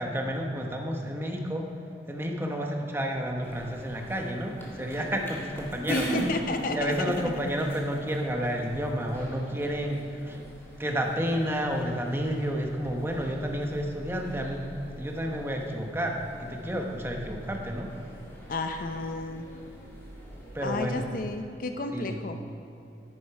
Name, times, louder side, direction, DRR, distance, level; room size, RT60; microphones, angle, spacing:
voice 1, 0.0-1.7 2.1-6.1 6.7-10.4 10.8-14.7 15.0-17.9 20.5-21.1 21.9-22.2, equal, 15° right, 1 dB, 0.9 m, -30 dB
sound 1, 3.4-21.4, equal, 15° left, 1.9 m, -42 dB
voice 2, 5.9-7.1 18.5-19.5 20.6-22.4, left 2 dB, 50° left, 6 dB, 0.6 m, -32 dB
10.5 x 10.0 x 4.8 m, 2.8 s
head